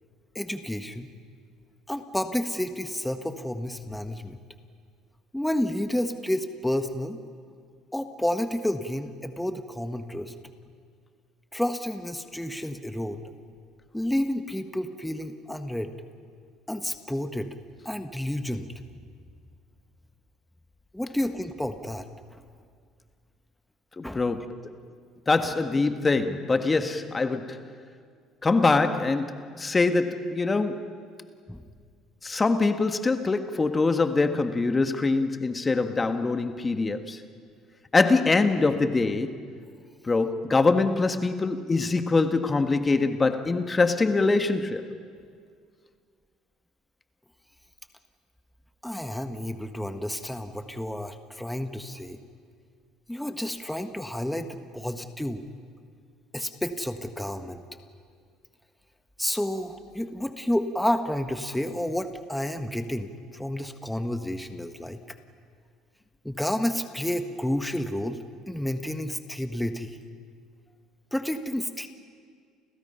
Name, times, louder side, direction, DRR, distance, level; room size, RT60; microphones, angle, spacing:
voice 1, 0.3-1.1 1.9-4.4 5.3-7.2 7.9-10.3 11.5-13.2 13.9-15.9 16.7-17.5 17.8-18.7 20.9-22.1 24.0-24.3 25.4-25.5 31.5-31.6 48.8-52.2 53.1-55.4 56.3-57.6 59.2-65.2 66.2-68.2 68.5-70.0 71.1-71.9, left 1 dB, 5° left, 1.6 m, -30 dB
voice 2, 24.0-24.5 25.3-27.6 28.4-30.9 32.2-37.2 37.9-39.4 40.0-44.8, left 3 dB, 25° left, 1.6 m, -24 dB
30.0 x 29.5 x 5.7 m
hypercardioid pair, 70°, 0 cm